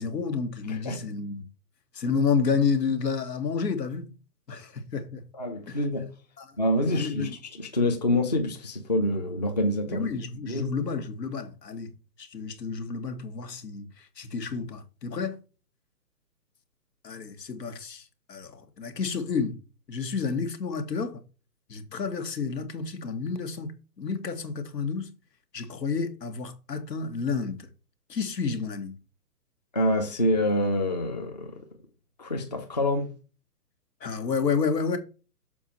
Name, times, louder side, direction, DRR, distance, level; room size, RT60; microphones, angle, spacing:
voice 1, 0.0-1.4 1.9-4.1 4.5-5.2 5.7-5.8 6.4-6.5 6.9-7.4 9.9-15.4 17.0-19.6 19.9-21.2 21.7-23.7 24.0-25.1 25.5-27.7 28.1-29.0 34.0-35.0, left 5 dB, 85° left, 2.0 m, -30 dB
voice 2, 0.6-1.0 5.3-6.1 6.6-10.1 10.5-10.7 29.7-31.6 32.2-33.1, left 1 dB, 25° left, 0.7 m, -26 dB
7.2 x 4.8 x 4.4 m
hypercardioid pair, 180°, 48 cm